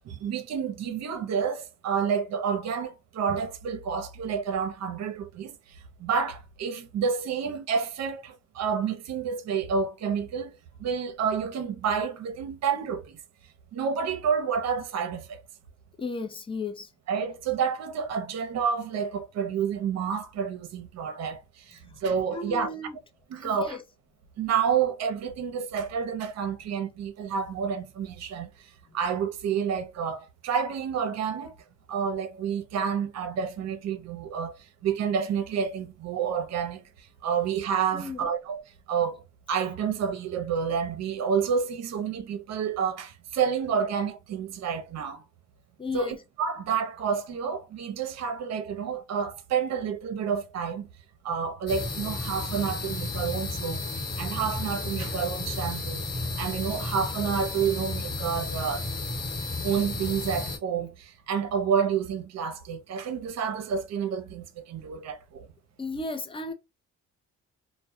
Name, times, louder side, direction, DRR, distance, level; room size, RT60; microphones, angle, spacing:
voice 1, 0.0-5.5 6.0-10.5 10.8-13.1 13.7-15.4 17.1-21.4 21.7-22.7 23.3-23.8 24.4-28.5 28.9-31.5 31.9-34.5 34.8-36.8 37.2-38.6 38.9-39.2 39.5-45.2 45.9-50.9 51.2-53.8 54.2-56.0 56.4-58.9 59.6-65.5, right 7 dB, 60° right, 0.6 m, -29 dB
voice 2, 16.0-16.9 21.9-22.0 22.3-23.0 23.4-23.8 37.9-38.2 45.8-46.2 65.8-66.5, left 3 dB, 15° left, 0.5 m, -34 dB
sound 1, 51.7-60.6, left 2 dB, 35° left, 1.2 m, -33 dB
2.2 x 2.1 x 2.7 m
cardioid pair, 90°, 30 cm